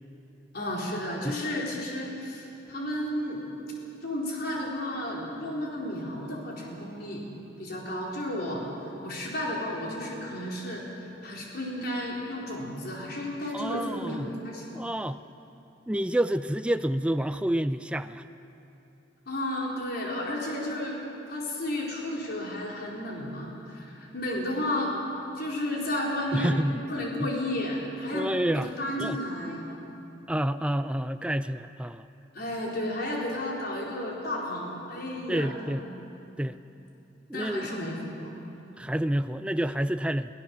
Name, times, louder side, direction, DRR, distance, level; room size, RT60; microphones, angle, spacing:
voice 1, 0.5-3.4 4.0-7.3 7.6-8.6 9.0-14.7 19.3-21.0 21.3-24.9 25.4-29.7 32.3-35.8 37.3-38.3, left 1 dB, 55° left, -3 dB, 4.2 m, -33 dB
voice 2, 13.5-14.3 14.7-15.2 15.9-18.2 26.3-26.8 27.2-27.3 28.1-28.7 29.0-29.2 30.3-32.1 35.3-35.8 36.4-36.6 37.3-37.7 38.8-40.3, right 1 dB, 5° right, 11 dB, 0.4 m, -28 dB
23.5 x 16.0 x 7.2 m, 2.8 s
head